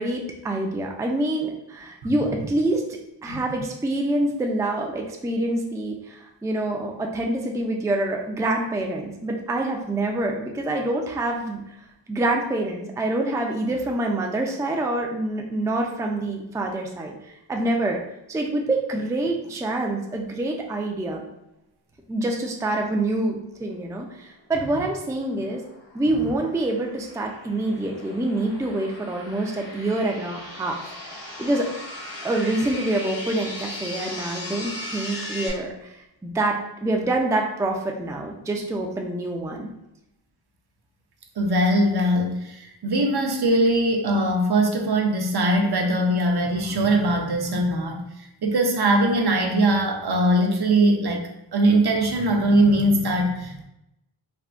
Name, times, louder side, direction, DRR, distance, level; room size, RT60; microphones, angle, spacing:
voice 1, 0.0-2.8 3.2-11.6 12.1-18.0 18.3-21.2 22.1-25.6 25.9-31.7 32.2-39.7, right 2 dB, 10° right, 1 dB, 0.4 m, -26 dB
sound 1, 24.7-35.5, left 1 dB, 75° left, 1.2 m, -38 dB
voice 2, 41.4-48.0 48.4-51.2 51.5-53.6, right 1 dB, 60° right, 2 dB, 0.6 m, -21 dB
3.5 x 2.1 x 2.4 m, 0.85 s
cardioid pair, 45°, 45 cm